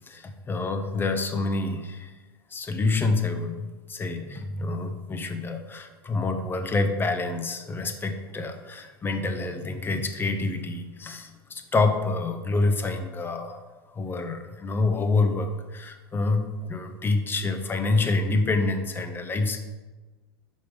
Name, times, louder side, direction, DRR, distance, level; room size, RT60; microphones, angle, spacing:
voice 1, 0.0-2.1 2.5-13.6 13.9-19.6, left 3 dB, 15° left, 6 dB, 0.7 m, -27 dB
6.0 x 5.4 x 5.0 m, 1.2 s
figure-of-eight pair, 90°, 13 cm